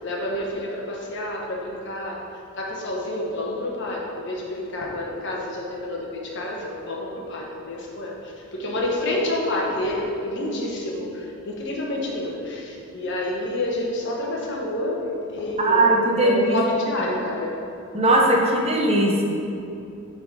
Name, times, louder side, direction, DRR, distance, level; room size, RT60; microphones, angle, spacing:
voice 1, 0.0-2.2 2.5-15.0 15.3-15.9 16.2-17.5, left 1 dB, 60° left, -2 dB, 1.2 m, -28 dB
voice 2, 15.6-16.6 17.9-19.2, right 1 dB, 30° right, -1 dB, 0.9 m, -19 dB
8.9 x 4.1 x 4.8 m, 2.7 s
head